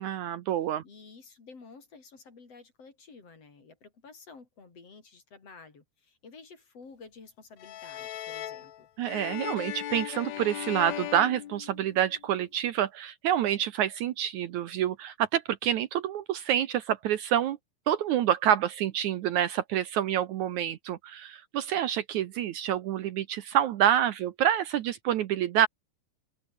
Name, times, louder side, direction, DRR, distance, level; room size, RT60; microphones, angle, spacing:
voice 1, 0.0-0.8 9.0-17.6 17.9-25.7, right 10 dB, 70° right, 2.1 m, -27 dB
voice 2, 0.8-8.9, left 4 dB, 45° left, 5.1 m, -51 dB
sound 1, 7.6-12.2, left 12 dB, 65° left, 2.2 m, -38 dB
omnidirectional pair, 3.9 m